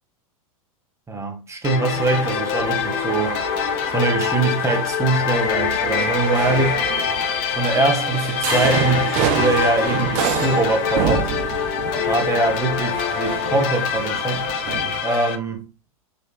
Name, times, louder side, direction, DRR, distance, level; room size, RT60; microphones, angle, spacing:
voice 1, 1.1-3.5 3.9-6.8 7.6-11.3 12.1-14.5 15.0-15.7, right 3 dB, 15° right, 1.2 m, -22 dB
sound 1, 1.6-15.4, left 8 dB, 40° left, 0.7 m, -24 dB
sound 2, 1.9-15.0, right 10 dB, 40° right, 0.5 m, -29 dB
4.3 x 3.1 x 2.9 m
figure-of-eight pair, 90°, 18 cm